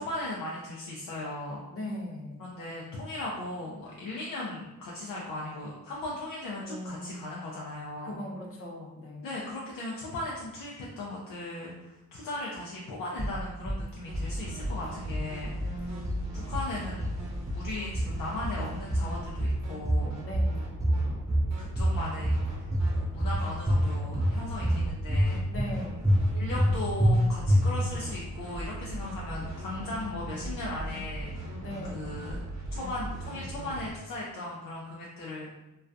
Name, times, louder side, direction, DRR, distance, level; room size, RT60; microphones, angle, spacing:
voice 1, 0.0-1.6 2.4-8.2 9.2-16.0 16.3-17.1 17.5-20.2 20.8-21.2 21.6-22.7 23.0-25.4 26.3-31.6 31.9-32.4 32.7-35.5, left 2 dB, 85° left, -4 dB, 0.5 m, -37 dB
voice 2, 1.7-2.5 6.6-7.3 8.0-9.3 15.6-16.4 20.2-20.7 25.5-26.2 31.6-32.3, left 1 dB, 45° left, -1 dB, 0.7 m, -40 dB
sound 1, 13.2-13.8 14.1-14.8 15.1-15.8 16.0-16.7 17.0-17.7 17.9-18.6 18.9-19.6 19.9-20.5 20.8-21.5 21.8-22.4 22.7-23.4 23.7-24.3 24.6-25.3 25.6-25.7 26.0-26.7 27.0-27.1 27.5-28.0, equal, 10° right, 0.4 m, -26 dB
sound 2, 14.1-33.9, right 1 dB, 55° right, 0.7 m, -39 dB
2.3 x 2.2 x 2.5 m, 0.97 s
cardioid pair, 60°, 32 cm